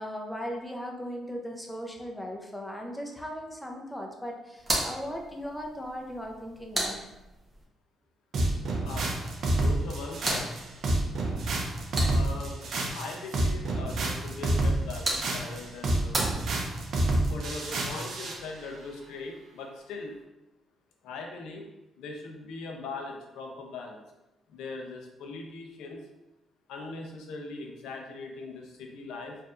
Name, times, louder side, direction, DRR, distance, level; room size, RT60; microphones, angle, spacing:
voice 1, 0.0-7.1, equal, 5° left, 0 dB, 0.6 m, -38 dB
sound 1, 4.6-7.6 9.6-12.6 14.6-17.0, right 1 dB, 25° right, 0.9 m, -36 dB
sound 2, 8.3-18.4, right 1 dB, 65° right, 0.6 m, -28 dB
voice 2, 8.8-9.2 9.4-10.5 12.0-12.6 12.9-16.2 17.3-20.1 21.0-21.7 22.0-24.0 24.5-26.0 26.7-29.4, left 3 dB, 90° left, 2 dB, 0.6 m, -40 dB
4.4 x 2.6 x 2.5 m, 0.98 s
cardioid pair, 90°, 0 cm